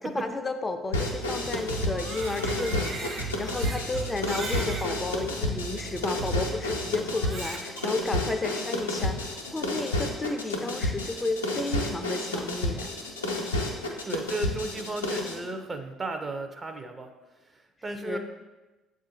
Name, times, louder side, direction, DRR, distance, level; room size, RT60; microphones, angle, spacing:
voice 1, 0.0-12.9 18.0-18.2, left 3 dB, 25° left, 7 dB, 0.3 m, -33 dB
sound 1, 0.9-15.4, left 1 dB, 90° left, 0.5 m, -31 dB
sound 2, 0.9-7.6, right 4 dB, 85° right, 0.8 m, -39 dB
Crying sobbing, 1.8-4.9 5.6-5.7 7.1-7.9, right 3 dB, 45° right, 1.1 m, -39 dB
voice 2, 14.0-17.1 17.5-18.2, right 2 dB, 30° right, 6 dB, 0.5 m, -34 dB
7.1 x 2.5 x 2.7 m, 1.1 s
hypercardioid pair, 55°, 0 cm